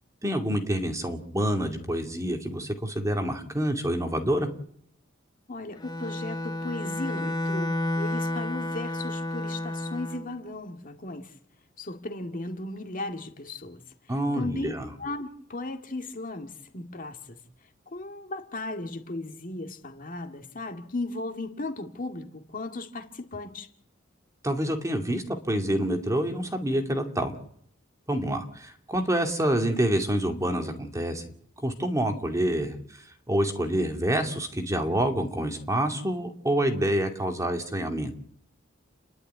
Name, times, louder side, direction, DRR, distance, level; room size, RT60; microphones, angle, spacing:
voice 1, 0.2-4.5 14.1-14.9 24.4-27.3 28.1-31.3 31.6-38.1, right 1 dB, 15° right, 4 dB, 2.5 m, -27 dB
voice 2, 5.5-11.3 11.8-13.8 14.3-14.7 15.0-17.4 17.9-23.7, left 2 dB, 45° left, 5 dB, 2.2 m, -36 dB
Bowed string instrument, 5.8-10.3, left 1 dB, 20° left, 1.1 m, -31 dB
29.5 x 12.0 x 9.4 m, 0.67 s
head